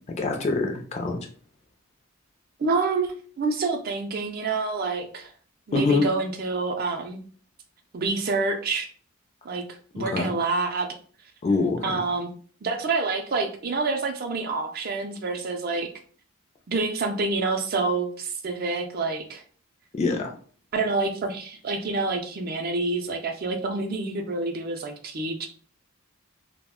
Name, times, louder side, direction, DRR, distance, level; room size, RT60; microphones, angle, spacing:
voice 1, 0.2-1.2 5.7-6.1 10.0-10.3 11.4-12.0 20.0-20.3, left 3 dB, 30° left, 3 dB, 0.4 m, -24 dB
voice 2, 2.6-5.3 5.7-7.2 7.9-8.9 9.4-9.6 9.9-10.9 11.8-12.3 12.6-15.9 16.7-19.4 20.7-25.5, right 3 dB, 45° right, 5 dB, 0.4 m, -27 dB
2.3 x 2.1 x 3.5 m, 0.44 s
head